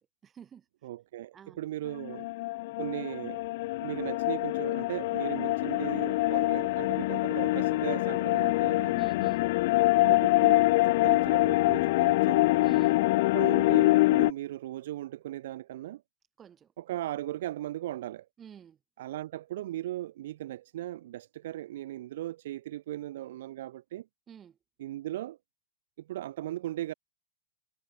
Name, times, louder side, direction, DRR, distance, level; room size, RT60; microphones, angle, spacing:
voice 1, 0.0-0.7 1.3-1.6 8.9-9.5 12.6-13.0 16.4-17.0 18.4-18.8 24.3-24.6, right 8 dB, 25° right, 4.6 m, -50 dB
voice 2, 0.8-2.3 2.8-3.5 3.8-9.0 10.0-12.5 13.3-16.0 16.8-18.3 19.0-24.1 24.8-25.4 26.0-26.9, right 14 dB, 65° right, 0.6 m, -37 dB
sound 1, 2.0-14.3, left 19 dB, 60° left, 0.4 m, -25 dB
hypercardioid pair, 110°, 0 cm